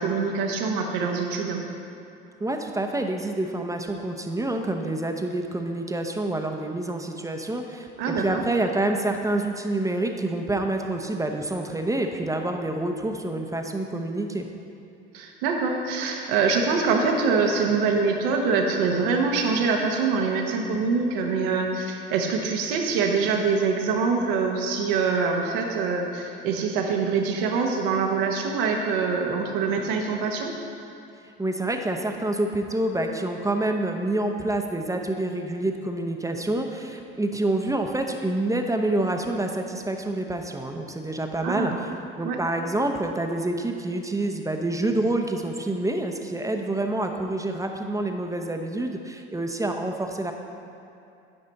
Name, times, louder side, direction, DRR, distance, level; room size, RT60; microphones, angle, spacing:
voice 1, 0.0-1.6 8.0-8.4 15.1-30.5 41.4-41.8 42.2-42.4, right 4 dB, 75° right, 1 dB, 1.2 m, -24 dB
voice 2, 2.4-14.5 31.4-50.3, right 2 dB, 10° right, 4 dB, 0.8 m, -27 dB
12.5 x 5.4 x 4.1 m, 2.6 s
hypercardioid pair, 65°, 29 cm